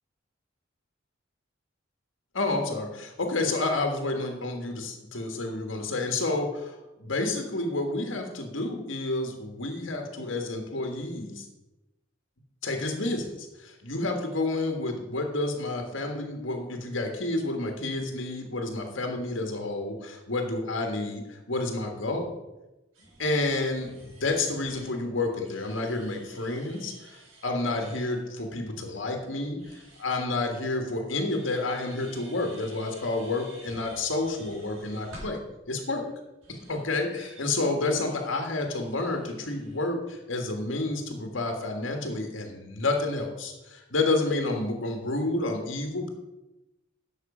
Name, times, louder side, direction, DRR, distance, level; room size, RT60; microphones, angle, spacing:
voice 1, 2.3-11.4 12.6-22.4 23.2-35.4 35.7-36.0 36.5-46.1, left 2 dB, 75° left, 3 dB, 1.5 m, -30 dB
sound 1, 22.9-30.0 31.2-35.4 36.1-36.2 36.4-36.8 37.2-39.9, right 1 dB, 90° right, 4.1 m, -51 dB
11.0 x 6.5 x 4.9 m, 1.0 s
head